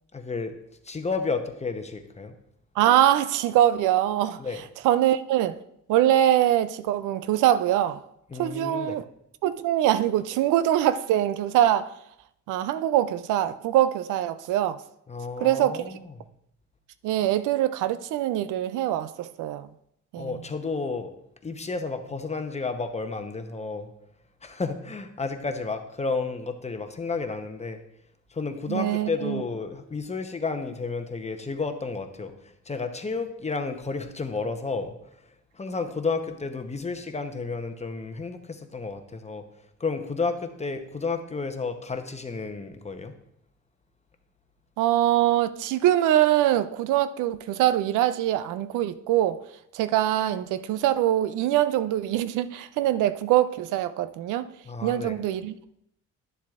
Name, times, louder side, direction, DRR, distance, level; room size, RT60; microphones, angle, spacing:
voice 1, 0.1-0.5 0.8-2.3 4.4-4.6 8.3-9.0 15.1-16.0 20.2-21.1 21.4-23.9 24.4-27.8 28.3-32.3 32.7-34.9 35.5-39.4 39.8-43.1 54.7-55.1, left 4 dB, 20° left, 0.8 m, -31 dB
voice 2, 2.8-5.6 5.9-8.0 8.3-9.0 9.4-11.9 12.5-14.8 15.4-15.9 17.0-19.7 20.1-20.4 28.7-29.4 44.8-49.4 49.7-54.5 54.8-55.5, right 12 dB, 90° right, 0.5 m, -23 dB
11.0 x 7.3 x 2.4 m
cardioid pair, 90°, 30 cm